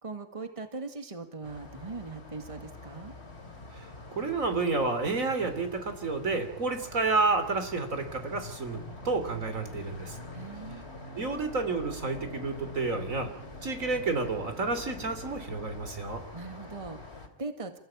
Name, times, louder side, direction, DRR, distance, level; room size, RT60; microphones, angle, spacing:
voice 1, 0.0-3.1 10.3-10.9 16.3-17.8, right 3 dB, 25° right, 7 dB, 1.9 m, -40 dB
sound 1, 1.4-17.3, left 2 dB, 55° left, 3.4 m, -45 dB
voice 2, 4.2-10.2 11.2-13.3 13.6-16.2, right 3 dB, 85° right, 8 dB, 3.5 m, -30 dB
28.0 x 15.5 x 8.7 m, 0.74 s
omnidirectional pair, 1.4 m